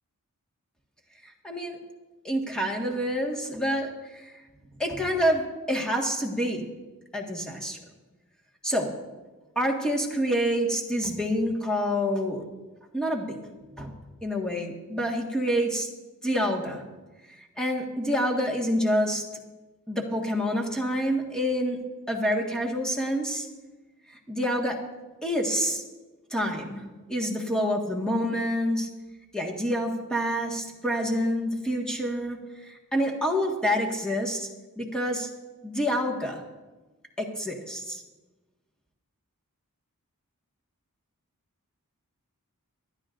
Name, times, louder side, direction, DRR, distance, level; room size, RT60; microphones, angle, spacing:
voice 1, 1.2-1.8 2.2-4.3 4.8-6.6 7.1-7.8 8.6-8.9 9.5-12.4 12.9-13.4 13.8-13.9 14.2-15.9 16.2-16.8 17.4-19.2 19.9-21.8 22.1-23.5 24.1-24.8 25.2-25.8 26.3-26.8 27.1-28.9 29.3-34.5 34.8-35.3 35.6-36.4 37.2-38.0, equal, 5° left, 0 dB, 1.6 m, -27 dB
24.5 x 11.5 x 2.6 m, 1.2 s
head